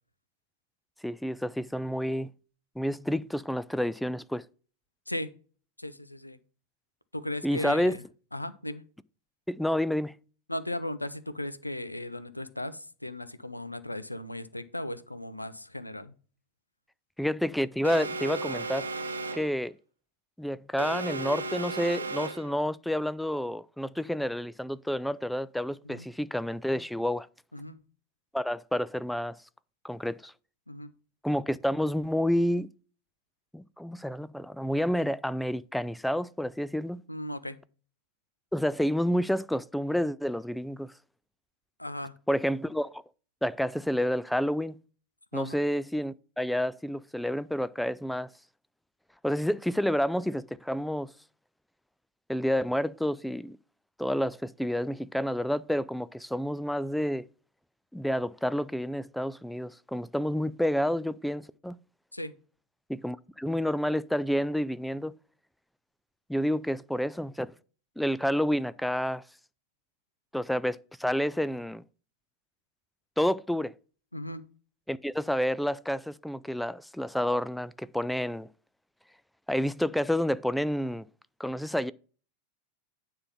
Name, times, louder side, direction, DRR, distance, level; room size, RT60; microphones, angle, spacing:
voice 1, 1.0-2.3 2.8-4.4 7.4-7.9 9.5-10.1 17.2-18.9 19.3-19.7 20.4-27.3 28.3-29.4 29.8-30.3 31.2-32.7 33.5-37.0 38.5-40.9 42.3-43.0 43.4-44.8 45.3-48.3 49.2-51.1 52.3-53.6 54.0-57.3 57.9-61.8 62.9-65.1 66.3-67.5 68.0-69.2 70.3-71.8 73.2-73.7 74.9-78.5 79.5-81.1 81.4-81.9, equal, ahead, 0.3 m, -29 dB
voice 2, 5.8-6.4 7.1-8.0 8.3-8.8 10.5-16.1 25.8-26.1 27.5-27.8 30.7-30.9 37.1-37.6 41.8-42.1 45.3-45.6 62.1-62.3 74.1-74.4, left 1 dB, 85° left, 0.6 m, -36 dB
Alarm, 17.8-19.6 20.8-22.6, right 3 dB, 75° right, 0.8 m, -35 dB
9.5 x 3.8 x 5.7 m
figure-of-eight pair, 85°, 0 cm